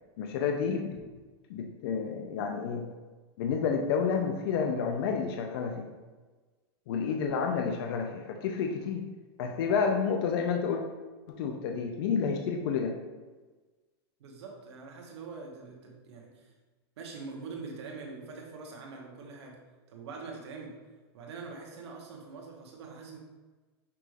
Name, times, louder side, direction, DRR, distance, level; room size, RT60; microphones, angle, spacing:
voice 1, 0.2-1.0 1.5-2.9 3.4-5.9 6.9-9.0 9.4-10.8 11.3-12.9, left 6 dB, 60° left, 3 dB, 0.5 m, -30 dB
voice 2, 14.2-16.5 17.0-19.6 19.9-20.8 21.1-23.2, right 4 dB, 80° right, 0 dB, 1.1 m, -44 dB
5.9 x 3.2 x 2.4 m, 1.3 s
supercardioid pair, 140°, 14 cm